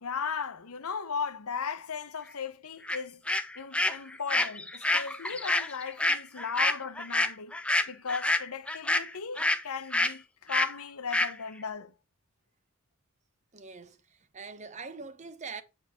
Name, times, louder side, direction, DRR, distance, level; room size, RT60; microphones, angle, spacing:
voice 1, 0.0-3.2 3.6-7.6 7.9-11.9, left 6 dB, 75° left, 0.9 m, -36 dB
sound 1, 2.9-3.0 3.3-9.6 9.9-10.1 10.5-10.7 11.1-11.3, left 2 dB, 5° left, 0.5 m, -27 dB
voice 2, 13.5-14.0 14.3-15.6, right 4 dB, 30° right, 0.8 m, -42 dB
8.3 x 4.8 x 4.6 m
head